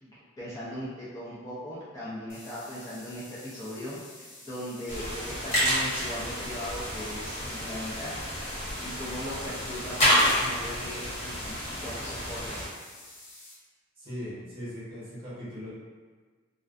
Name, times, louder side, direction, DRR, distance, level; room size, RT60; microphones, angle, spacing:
voice 1, 0.0-8.2 8.8-11.5 11.8-12.7, equal, 15° left, -10 dB, 0.3 m, -39 dB
sound 1, 2.3-13.5, left 2 dB, 60° left, 0.6 m, -49 dB
sound 2, 4.9-12.7, equal, 35° left, 0.9 m, -29 dB
voice 2, 14.0-15.7, equal, 25° right, -10 dB, 1.0 m, -39 dB
2.3 x 2.2 x 2.4 m, 1.4 s
head